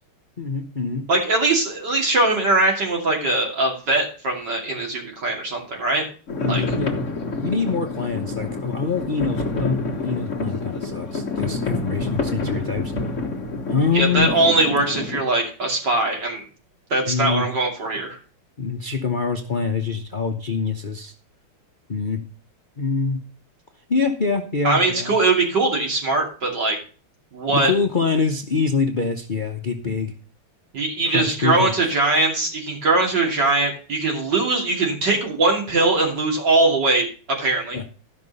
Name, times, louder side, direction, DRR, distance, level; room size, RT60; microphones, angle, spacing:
voice 1, 0.4-1.1 6.4-7.0 7.4-12.9 13.7-14.3 17.1-17.5 18.6-21.1 21.9-22.2 22.8-23.2 23.9-25.1 27.5-30.1 31.1-31.7 37.7-37.8, left 5 dB, 80° left, 4 dB, 0.4 m, -25 dB
voice 2, 1.1-6.0 6.5-6.6 13.9-16.4 16.9-18.2 24.6-26.8 27.3-27.7 30.7-37.8, right 2 dB, 50° right, 0 dB, 3.3 m, -21 dB
sound 1, 6.3-15.2, left 3 dB, 40° left, 1.6 m, -28 dB
13.5 x 6.0 x 5.4 m, 0.39 s
omnidirectional pair, 2.4 m